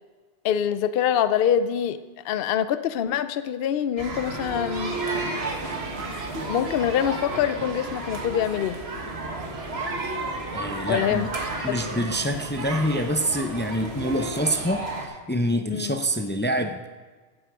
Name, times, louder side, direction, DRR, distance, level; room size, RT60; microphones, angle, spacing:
voice 1, 0.4-5.0 6.5-8.8 10.9-11.3 11.7-12.1 15.7-16.0, left 9 dB, 65° left, 12 dB, 0.7 m, -25 dB
sound 1, 4.0-15.1, right 2 dB, 70° right, 1.7 m, -32 dB
voice 2, 10.5-11.3 11.6-16.9, equal, 15° left, 7 dB, 0.5 m, -26 dB
15.5 x 8.1 x 4.9 m, 1.4 s
omnidirectional pair, 1.1 m